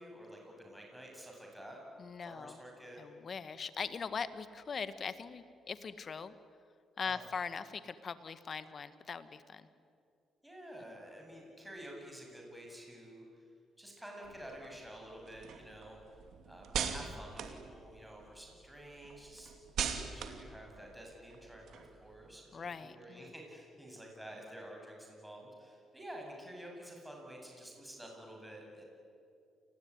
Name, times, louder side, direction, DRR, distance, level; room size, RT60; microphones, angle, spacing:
voice 1, 0.0-1.8 2.2-3.0 7.0-7.2 10.4-13.4 13.8-16.0 16.4-19.5 19.9-28.8, equal, 5° right, 0 dB, 7.8 m, -50 dB
voice 2, 2.0-2.6 3.0-6.3 7.0-9.7 16.8-17.1 22.5-23.3, left 5 dB, 45° left, 12 dB, 1.6 m, -41 dB
sound 1, 14.2-18.4 18.8-22.3, right 7 dB, 75° right, 2.7 m, -41 dB
29.5 x 20.5 x 9.8 m, 2.4 s
cardioid pair, 90°, 0 cm